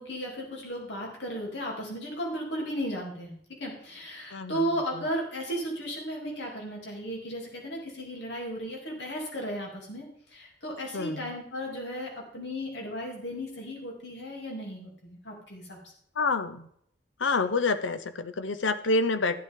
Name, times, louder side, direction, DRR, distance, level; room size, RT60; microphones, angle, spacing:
voice 1, 0.0-15.8, equal, 70° left, -1 dB, 3.0 m, -35 dB
voice 2, 4.3-4.7 10.9-11.3 16.2-16.7 17.2-19.4, left 3 dB, 85° left, 11 dB, 0.7 m, -27 dB
13.5 x 8.2 x 3.7 m, 0.68 s
head